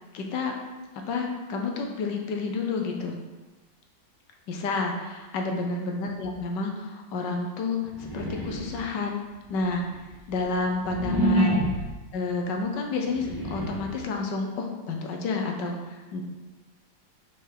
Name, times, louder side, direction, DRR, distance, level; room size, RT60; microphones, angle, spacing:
voice 1, 0.1-0.5 1.1-3.1 4.5-9.2 9.5-9.9 10.3-11.8 12.1-16.2, left 3 dB, 75° left, 2 dB, 1.5 m, -30 dB
sound 1, 7.9-9.0 9.6-12.0 12.9-14.0, equal, 15° right, 0.8 m, -28 dB
5.5 x 4.1 x 5.1 m, 1.2 s
omnidirectional pair, 2.0 m